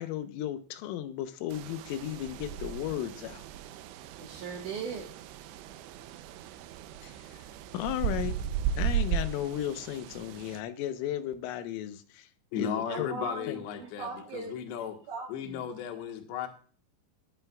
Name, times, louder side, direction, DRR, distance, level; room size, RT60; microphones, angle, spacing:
voice 1, 0.0-3.5 7.0-7.4 7.7-8.3 8.8-12.3 12.6-13.1 13.5-13.6, left 11 dB, 90° left, 9 dB, 3.5 m, -35 dB
sound 1, 1.5-10.6, right 8 dB, 80° right, 2.5 m, -36 dB
voice 2, 4.2-5.1 12.9-14.6 14.8-15.7, right 4 dB, 65° right, -1 dB, 2.1 m, -39 dB
voice 3, 12.5-15.0 15.3-16.5, left 8 dB, 70° left, 4 dB, 3.3 m, -35 dB
20.5 x 9.0 x 2.4 m, 0.42 s
omnidirectional pair, 5.6 m